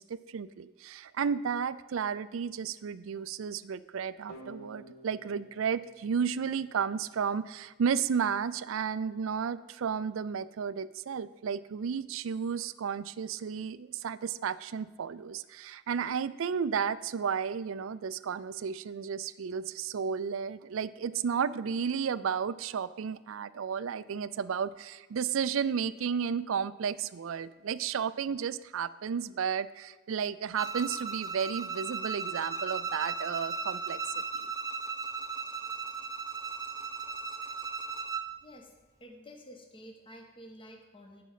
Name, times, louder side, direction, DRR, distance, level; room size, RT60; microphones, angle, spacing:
voice 1, 0.0-34.5, right 7 dB, 70° right, 16 dB, 0.4 m, -33 dB
sound 1, 4.3-7.1, right 1 dB, 60° left, 2.4 m, -52 dB
Bowed string instrument, 30.6-38.3, right 5 dB, 15° right, 0.6 m, -36 dB
voice 2, 38.4-38.7 39.0-41.2, equal, 25° left, 3 dB, 1.2 m, -50 dB
10.0 x 5.2 x 7.4 m, 1.2 s
head